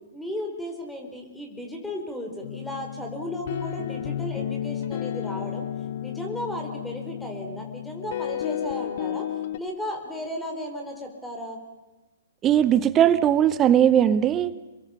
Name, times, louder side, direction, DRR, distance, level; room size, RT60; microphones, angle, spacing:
voice 1, 0.1-5.7 6.0-9.2 9.6-11.6, equal, 5° left, 2 dB, 4.4 m, -35 dB
sound 1, 2.4-9.6, left 10 dB, 50° left, 1.5 m, -32 dB
voice 2, 12.4-14.5, right 10 dB, 20° right, 15 dB, 1.0 m, -19 dB
28.5 x 22.5 x 5.8 m, 1.2 s
figure-of-eight pair, 125°, 0 cm